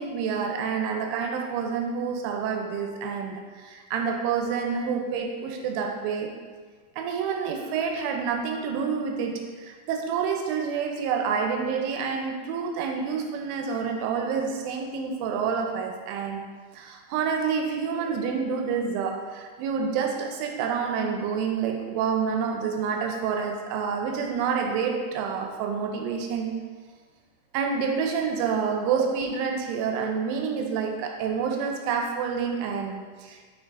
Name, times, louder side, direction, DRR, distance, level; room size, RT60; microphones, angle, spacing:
voice 1, 0.0-6.4 7.0-16.5 16.7-26.6 27.5-33.5, right 6 dB, 90° right, 3 dB, 3.1 m, -28 dB
6.4 x 6.2 x 2.4 m, 1.5 s
omnidirectional pair, 5.5 m